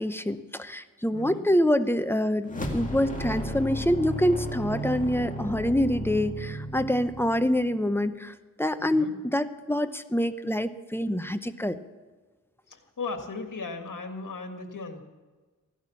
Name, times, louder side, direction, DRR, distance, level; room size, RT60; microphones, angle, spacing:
voice 1, 0.0-11.8, equal, 5° left, 10 dB, 0.8 m, -26 dB
voice 2, 1.1-1.5 8.8-9.1 12.7-15.0, left 4 dB, 75° left, 5 dB, 1.9 m, -37 dB
sound 1, 2.5-7.8, equal, 25° left, 2.1 m, -34 dB
16.0 x 12.0 x 7.1 m, 1.3 s
wide cardioid pair, 85°, 32 cm